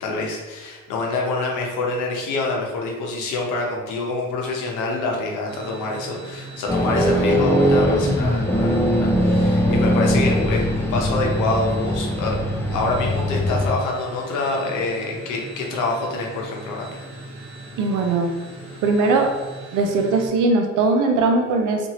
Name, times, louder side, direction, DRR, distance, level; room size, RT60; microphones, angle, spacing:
voice 1, 0.0-12.4 12.7-17.0, left 3 dB, 85° left, -1 dB, 0.8 m, -26 dB
sound 1, 5.5-20.3, right 2 dB, 60° right, 1.0 m, -40 dB
sound 2, 6.7-13.8, equal, 10° left, 0.3 m, -20 dB
voice 2, 17.8-18.3 18.8-19.4 19.7-21.9, right 3 dB, 85° right, 4 dB, 0.5 m, -20 dB
2.8 x 2.5 x 2.9 m, 1.2 s
cardioid pair, 90°, 30 cm